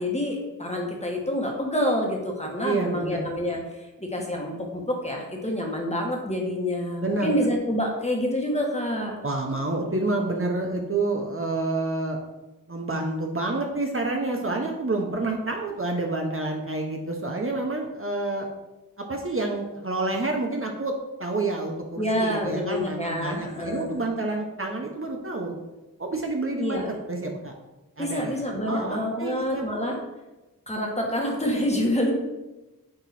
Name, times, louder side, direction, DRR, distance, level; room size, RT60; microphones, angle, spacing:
voice 1, 0.0-9.1 22.0-24.0 26.6-26.9 28.0-30.0 30.7-32.1, equal, 20° left, 0 dB, 1.5 m, -27 dB
voice 2, 2.6-3.2 7.0-7.3 9.2-12.2 12.7-18.5 19.0-25.6 26.0-26.8 27.1-27.5 28.0-28.4 28.7-29.6, right 2 dB, 40° right, 1 dB, 0.8 m, -28 dB
8.7 x 3.0 x 4.2 m, 1.0 s
wide cardioid pair, 50°, 34 cm